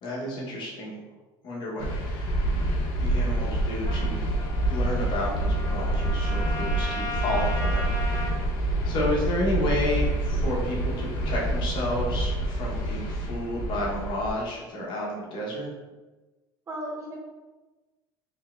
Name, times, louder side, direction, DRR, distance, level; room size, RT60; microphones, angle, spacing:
voice 1, 0.0-1.0 1.4-2.4 3.0-4.3 4.7-8.3 8.8-15.7, left 1 dB, 55° left, -3 dB, 1.2 m, -31 dB
sound 1, 1.8-14.3, right 1 dB, 80° left, 0.8 m, -27 dB
Trumpet, 3.9-8.4, left 1 dB, 30° left, 0.7 m, -36 dB
voice 2, 16.7-17.2, right 1 dB, 30° right, -3 dB, 1.2 m, -36 dB
4.0 x 3.3 x 2.5 m, 1.2 s
supercardioid pair, 110°, 10 cm